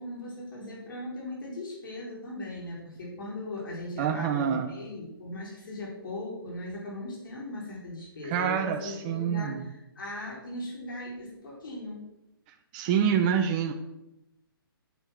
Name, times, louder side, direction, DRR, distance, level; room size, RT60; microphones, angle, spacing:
voice 1, 0.0-12.1, left 1 dB, 60° left, -3 dB, 4.7 m, -39 dB
voice 2, 4.0-4.7 8.3-9.6 12.7-13.7, right 8 dB, 25° right, 4 dB, 0.8 m, -26 dB
8.7 x 8.1 x 6.4 m, 0.92 s
hypercardioid pair, 165°, 12 cm